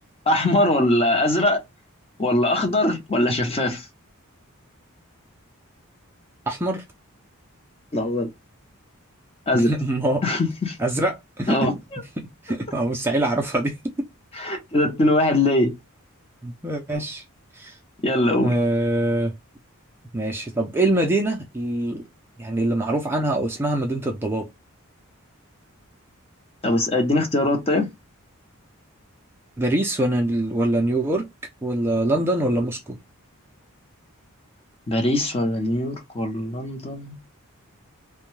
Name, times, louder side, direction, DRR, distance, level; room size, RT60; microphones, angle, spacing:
voice 1, 0.3-1.6 2.2-3.9 7.9-8.3 9.5-9.7 10.2-10.8 11.5-12.0 14.3-15.7 18.0-18.6 26.6-27.9 34.9-37.2, left 1 dB, 30° left, 0.6 m, -21 dB
voice 2, 6.5-6.8 9.5-10.2 10.8-11.6 12.2-14.1 16.4-17.2 17.5-17.8 18.4-19.3 20.1-22.0 22.4-24.5 29.6-31.3 31.6-33.0, right 1 dB, 10° right, 0.4 m, -24 dB
2.6 x 2.1 x 3.1 m
head